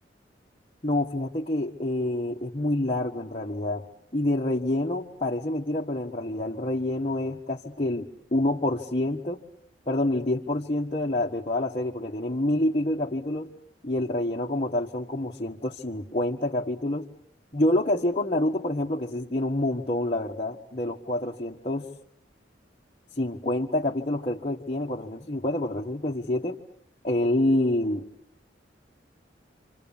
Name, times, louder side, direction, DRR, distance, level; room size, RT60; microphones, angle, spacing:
voice 1, 0.8-3.8 4.1-9.4 9.9-13.5 13.8-17.1 17.5-21.9 23.2-26.6 27.0-28.1, left 1 dB, 35° left, -4 dB, 1.5 m, -27 dB
28.5 x 26.5 x 7.2 m, 0.68 s
head